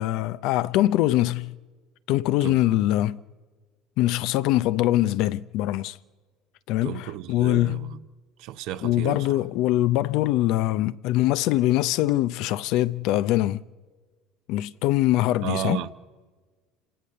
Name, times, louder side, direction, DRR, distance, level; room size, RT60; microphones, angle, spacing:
voice 1, 0.0-1.6 2.1-3.2 4.0-6.0 6.7-7.9 8.8-13.6 14.5-15.8, left 15 dB, 70° left, 0.6 m, -23 dB
voice 2, 6.8-8.0 8.4-9.4 15.4-15.9, right 13 dB, 70° right, 1.0 m, -33 dB
27.5 x 18.0 x 6.8 m
supercardioid pair, 105°, 0 cm